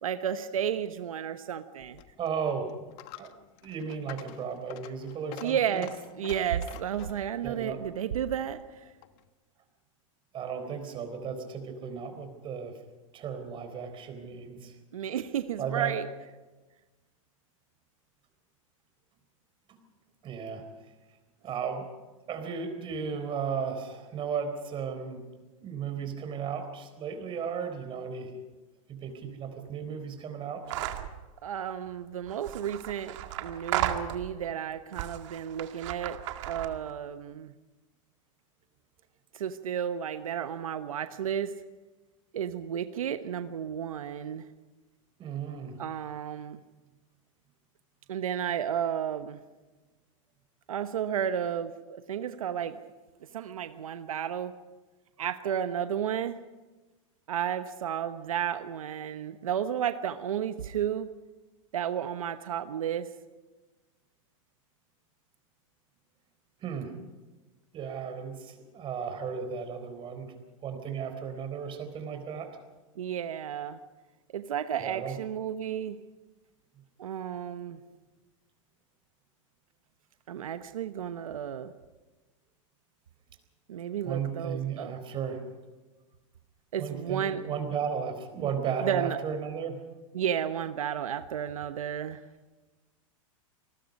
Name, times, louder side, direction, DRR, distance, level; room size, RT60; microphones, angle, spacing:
voice 1, 0.0-2.0 5.4-5.9 6.2-8.8 14.9-16.1 31.4-36.2 36.4-37.5 39.3-41.5 42.3-44.5 45.8-46.6 48.1-49.4 50.7-52.8 53.3-54.5 55.2-56.4 57.3-61.1 61.7-63.1 73.0-73.8 74.3-76.0 77.0-77.8 80.3-81.7 83.7-84.9 86.7-87.4 88.4-88.5 88.8-89.2 90.1-92.2, right 9 dB, 90° right, 10 dB, 1.0 m, -32 dB
Coin (dropping), 1.8-9.3, left 13 dB, 50° left, 1.3 m, -49 dB
voice 2, 2.2-2.7 3.2-3.3 3.6-5.8 7.4-7.8 10.3-12.7 13.1-14.7 15.6-15.9 19.7-19.8 20.2-20.6 21.4-21.8 22.3-25.2 25.6-28.3 28.9-30.6 45.2-45.8 66.6-66.9 67.7-70.3 70.6-72.5 74.8-75.2 84.0-85.4 86.8-89.8, right 6 dB, 30° right, 7 dB, 4.2 m, -35 dB
sound 1, 30.7-31.1 32.3-34.5 34.9-36.9, right 12 dB, 60° right, 2.0 m, -34 dB
27.0 x 20.0 x 5.3 m, 1.2 s
hypercardioid pair, 125°, 17 cm